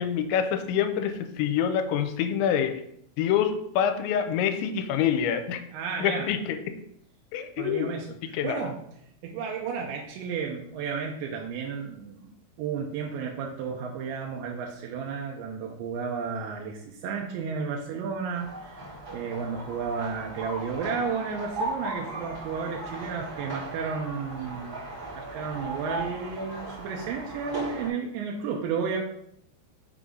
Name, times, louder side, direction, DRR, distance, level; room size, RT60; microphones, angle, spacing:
voice 1, 0.0-2.8 3.2-5.6 6.0-6.6 7.3-7.9 8.2-8.7, left 8 dB, 85° left, 8 dB, 2.9 m, -26 dB
voice 2, 5.7-6.3 7.6-8.1 8.4-8.8 9.2-12.3 12.6-24.8 25.1-29.0, right 6 dB, 90° right, -1 dB, 3.0 m, -32 dB
sound 1, 18.3-27.9, right 2 dB, 40° right, 1.4 m, -37 dB
6.9 x 3.7 x 5.3 m, 0.72 s
omnidirectional pair, 5.2 m